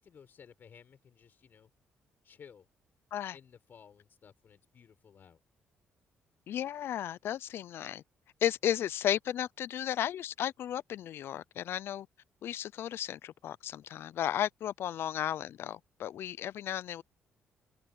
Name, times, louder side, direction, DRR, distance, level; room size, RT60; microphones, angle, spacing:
voice 1, 0.0-1.7 2.2-2.7 3.3-5.4, left 7 dB, 55° left, 4.4 m, -56 dB
voice 2, 6.5-8.0 8.4-12.1 12.4-17.0, left 11 dB, 70° left, 0.5 m, -34 dB
cardioid pair, 85°, 4 cm